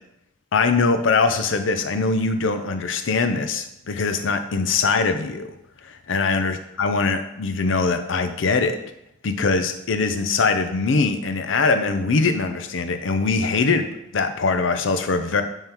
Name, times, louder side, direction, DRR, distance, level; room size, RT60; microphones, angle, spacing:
voice 1, 0.5-5.5 5.8-8.8 9.2-13.9 14.1-15.4, left 4 dB, 80° left, 8 dB, 0.6 m, -22 dB
8.8 x 3.7 x 3.0 m, 0.82 s
head